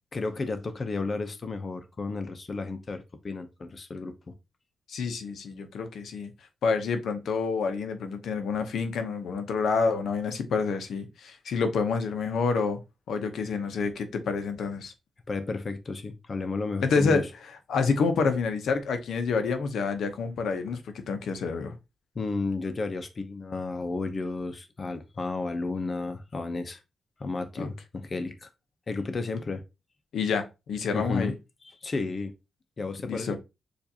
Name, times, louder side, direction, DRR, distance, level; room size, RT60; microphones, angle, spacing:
voice 1, 0.1-4.3 15.3-17.2 22.1-26.8 27.2-28.5 28.9-29.6 30.9-31.3 31.8-32.3 32.8-33.4, left 3 dB, 30° left, 0.6 m, -32 dB
voice 2, 4.9-6.3 6.6-12.8 13.1-14.9 16.8-17.3 17.7-21.7 27.6-27.7 30.1-31.3 33.0-33.4, left 5 dB, 90° left, 0.8 m, -28 dB
6.8 x 2.5 x 2.8 m
wide cardioid pair, 170°, 0 cm